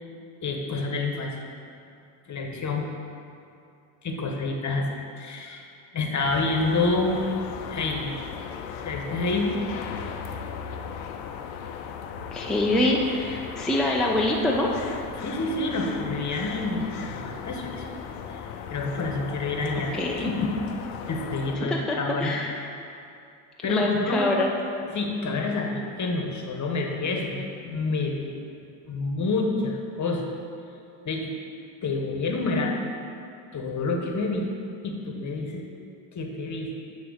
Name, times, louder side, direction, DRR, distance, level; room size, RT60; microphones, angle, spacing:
voice 1, 0.4-1.5 2.3-2.9 4.0-4.9 5.2-5.7 5.9-7.2 7.7-8.2 8.8-9.6 9.9-10.0 15.2-17.9 18.3-19.9 20.3-20.5 21.1-22.3 23.6-24.3 24.9-28.4 28.9-30.3 31.0-31.3 31.8-32.8 33.5-34.4 34.8-35.6 36.1-36.7, left 3 dB, 35° left, 2 dB, 1.2 m, -28 dB
sound 1, 6.2-21.6, left 7 dB, 70° left, 0.7 m, -37 dB
voice 2, 12.3-14.7 19.9-20.3 21.5-22.7 23.7-24.5, left 1 dB, ahead, -2 dB, 0.6 m, -25 dB
9.1 x 3.1 x 6.4 m, 2.5 s
supercardioid pair, 75°, 50 cm